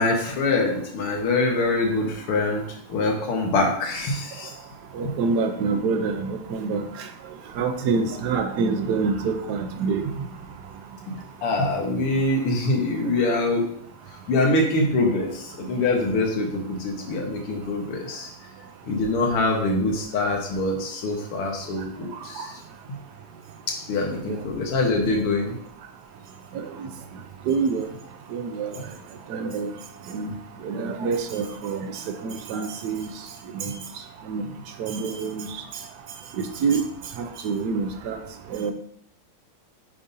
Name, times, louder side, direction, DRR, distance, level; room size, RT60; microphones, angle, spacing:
voice 1, 0.0-4.5 5.1-5.2 11.1-11.2 11.4-13.6 14.3-18.3 18.8-22.6 23.7-25.6, left 2 dB, 80° left, 1 dB, 2.2 m, -24 dB
voice 2, 4.9-6.8 7.6-10.3 22.4-22.5 24.3-24.4 26.5-26.7 27.5-27.8 28.3-28.8 29.3-29.7 30.1-30.3 30.6-31.9 32.2-33.1 33.6-33.8 34.3-34.4 34.8-35.5 36.4-36.8 37.4-38.2 38.5-38.7, right 5 dB, 65° right, 6 dB, 1.0 m, -26 dB
8.6 x 5.3 x 2.7 m, 0.67 s
omnidirectional pair, 2.4 m